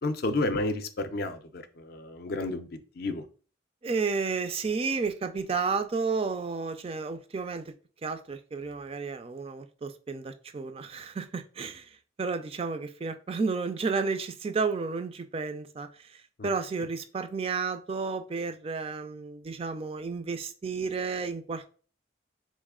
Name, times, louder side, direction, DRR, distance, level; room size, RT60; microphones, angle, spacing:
voice 1, 0.0-2.7 3.0-3.2 16.4-16.5, left 2 dB, 55° left, 0.5 m, -31 dB
voice 2, 3.8-7.6 8.0-11.9 12.2-15.9 16.4-21.7, right 4 dB, 30° right, 0.4 m, -32 dB
4.0 x 3.1 x 3.6 m
head